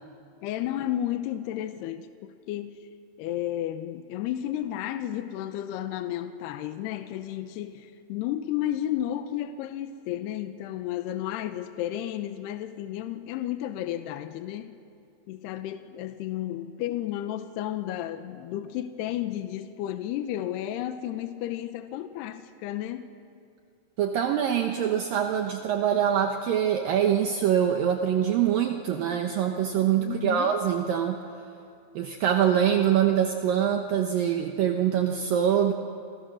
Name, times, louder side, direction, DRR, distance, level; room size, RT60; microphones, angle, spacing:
voice 1, 0.4-2.8 3.2-14.8 15.3-23.1 30.0-30.5, left 12 dB, 80° left, 2.9 m, -32 dB
voice 2, 24.0-31.2 32.0-35.7, right 9 dB, 70° right, 2.5 m, -24 dB
29.5 x 28.5 x 6.4 m
omnidirectional pair, 4.8 m